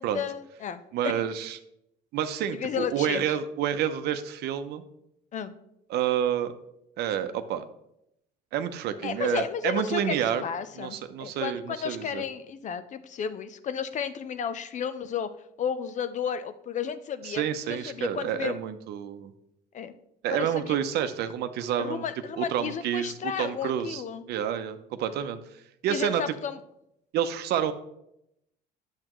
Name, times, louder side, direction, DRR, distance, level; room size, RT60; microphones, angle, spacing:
voice 1, 0.0-1.1 2.5-3.2 5.3-5.5 9.0-15.3 15.6-18.5 19.7-20.0 20.3-20.8 21.8-24.2 25.9-26.6, left 7 dB, 45° left, 12 dB, 0.6 m, -33 dB
voice 2, 0.9-1.6 2.1-4.8 5.9-6.5 7.0-7.6 8.5-10.4 10.8-12.2 17.2-19.3 20.2-22.1 22.4-24.0 24.3-25.4 25.8-26.2 27.1-27.7, right 9 dB, 75° right, 10 dB, 0.7 m, -29 dB
8.8 x 7.4 x 3.0 m, 0.80 s
cardioid pair, 110°, 17 cm